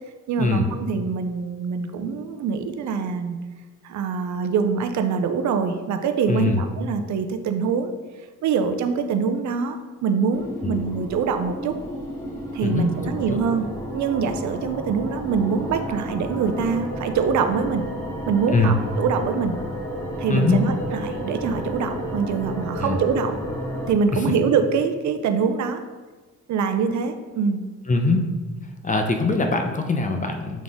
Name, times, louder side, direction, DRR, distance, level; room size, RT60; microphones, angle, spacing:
voice 1, 0.3-3.4 3.8-7.9 8.4-11.7 12.5-13.6 13.9-17.8 18.3-19.5 20.2-23.4 23.9-25.8 26.5-27.6, right 6 dB, 70° right, 7 dB, 0.6 m, -24 dB
voice 2, 6.3-6.6 10.6-10.7 12.6-12.9 13.1-13.4 18.5-18.7 20.3-20.6 22.8-23.0 24.1-24.2 27.9-28.3 28.8-30.6, left 3 dB, 25° left, 4 dB, 0.8 m, -22 dB
sound 1, 10.3-23.9, equal, 10° left, 1.4 m, -32 dB
7.3 x 3.9 x 3.6 m, 1.3 s
cardioid pair, 90°, 30 cm